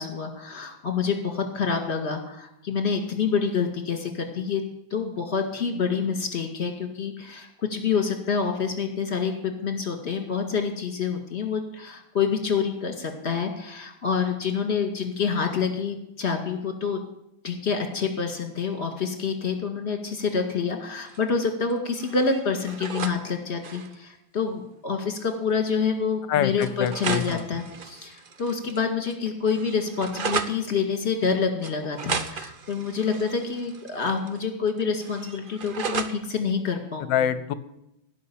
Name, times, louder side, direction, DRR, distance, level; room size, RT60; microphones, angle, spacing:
voice 1, 0.0-4.6 4.9-17.0 17.4-37.3, left 5 dB, 35° left, 5 dB, 2.2 m, -27 dB
sound 1, 21.1-21.7 22.0-23.2 23.5-24.0 25.1-25.2 25.5-25.6 26.6-28.8 29.1-30.6 31.6-34.4 34.7-36.2, right 5 dB, 75° right, 0.4 m, -35 dB
voice 2, 26.3-27.4 37.1-37.5, left 9 dB, 75° left, 15 dB, 1.4 m, -25 dB
17.0 x 5.8 x 8.6 m, 0.81 s
omnidirectional pair, 2.1 m